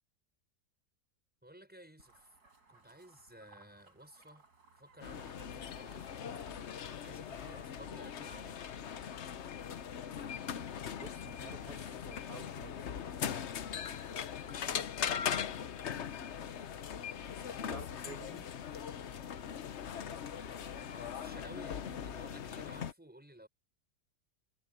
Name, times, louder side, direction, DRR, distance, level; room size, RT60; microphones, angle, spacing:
voice 1, 1.4-2.4 2.7-4.4 4.8-6.4 7.0-8.6 14.3-14.9 17.4-17.8 20.3-23.5, right 1 dB, 5° right, 5.4 m, -55 dB
sound 1, 2.0-8.0, right 4 dB, 75° right, 5.3 m, -63 dB
sound 2, 5.0-22.9, left 8 dB, 50° left, 1.0 m, -40 dB
voice 2, 10.9-12.8 17.7-18.5, right 3 dB, 55° right, 2.8 m, -50 dB
omnidirectional pair, 1.7 m